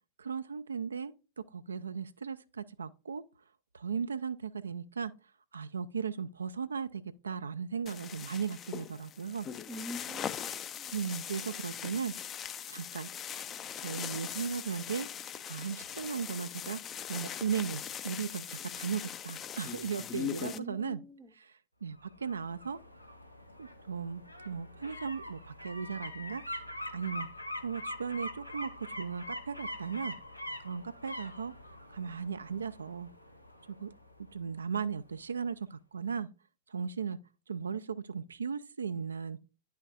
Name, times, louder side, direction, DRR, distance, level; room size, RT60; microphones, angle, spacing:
voice 1, 0.2-3.2 3.7-9.5 10.9-13.1 13.8-15.1 15.5-16.8 17.1-21.0 21.3-22.8 23.6-26.4 26.9-30.2 30.6-33.1 33.7-33.9 34.3-36.3 36.7-37.2 37.5-39.4, right 6 dB, 75° right, 0.3 m, -37 dB
sound 1, 7.9-20.6, left 9 dB, 30° left, 0.4 m, -41 dB
voice 2, 9.7-11.0 20.5-21.3, equal, 10° right, 0.7 m, -45 dB
sound 2, 22.0-34.8 35.1-35.2, left 1 dB, 90° left, 0.8 m, -44 dB
9.7 x 5.6 x 2.4 m
figure-of-eight pair, 90°, 0 cm